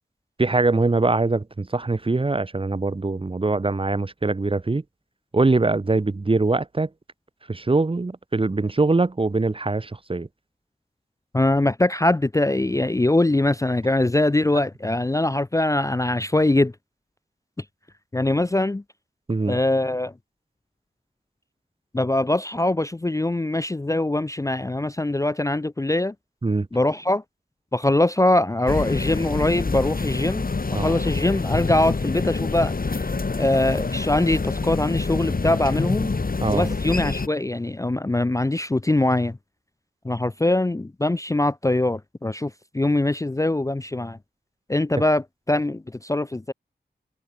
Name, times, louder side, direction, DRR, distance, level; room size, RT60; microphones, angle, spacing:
voice 1, 0.4-4.8 5.3-6.9 7.5-10.3 19.3-19.6 26.4-26.7 30.7-31.0 36.4-36.7 45.0-45.1, right 3 dB, 30° right, 0.8 m, -22 dB
voice 2, 11.3-16.7 18.1-18.8 19.5-20.1 21.9-26.1 26.7-27.2 27.7-33.0 33.4-36.1 36.5-39.4 40.0-44.2 44.7-46.5, left 2 dB, 20° left, 0.5 m, -22 dB
sound 1, 28.7-37.3, left 4 dB, 55° left, 2.1 m, -26 dB
wide cardioid pair, 85°, 18 cm